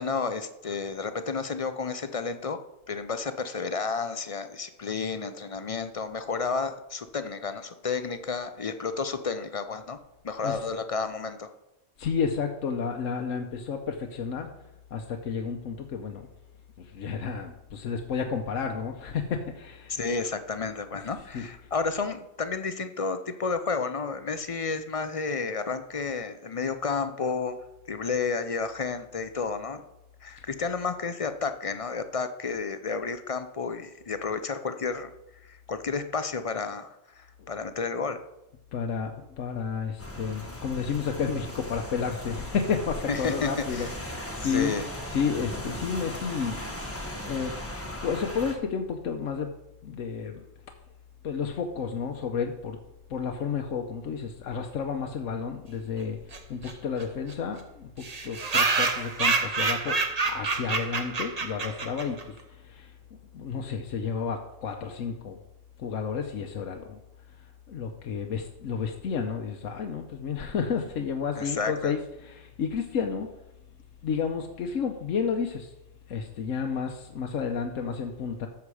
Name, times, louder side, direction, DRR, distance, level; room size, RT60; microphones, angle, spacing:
voice 1, 0.0-2.6 2.9-10.0 10.2-11.5 19.9-27.6 27.9-29.8 30.2-35.1 35.4-38.2 43.1-43.9 44.4-44.9 71.4-71.9, left 4 dB, 40° left, 10 dB, 0.5 m, -31 dB
voice 2, 12.0-14.5 14.9-16.2 16.8-20.0 21.0-21.5 38.7-47.5 48.0-49.5 49.8-50.4 51.2-52.8 53.1-56.2 56.5-62.9 63.3-65.4 65.8-67.0 67.7-73.3 74.0-75.7 76.1-78.5, left 6 dB, 75° left, 3 dB, 1.2 m, -31 dB
Rain, 40.0-48.5, left 1 dB, 10° left, 1.3 m, -38 dB
sound 1, 56.3-56.4 56.6-56.7 57.0-57.1 57.3-57.4 58.0-62.2, right 4 dB, 35° right, 0.9 m, -27 dB
13.0 x 7.1 x 4.9 m, 0.92 s
omnidirectional pair, 1.3 m